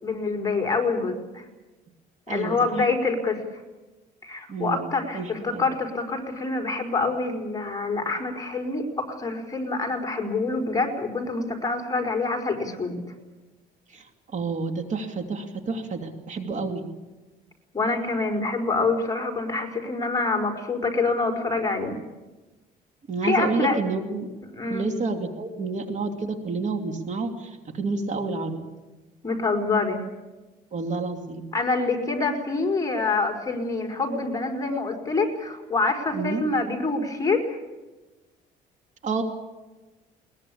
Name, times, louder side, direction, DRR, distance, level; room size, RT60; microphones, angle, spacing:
voice 1, 0.0-1.4 2.3-3.4 4.2-13.0 17.7-22.0 23.2-23.8 24.5-24.9 29.2-30.0 31.5-37.6, left 3 dB, 20° left, 3 dB, 4.6 m, -26 dB
voice 2, 4.5-5.6 13.9-14.0 14.3-16.9 23.1-24.3 24.7-28.6 30.7-31.5 36.1-36.4 39.0-39.2, right 4 dB, 45° right, 6 dB, 2.6 m, -29 dB
21.5 x 21.0 x 8.5 m, 1.2 s
cardioid pair, 110°, 17 cm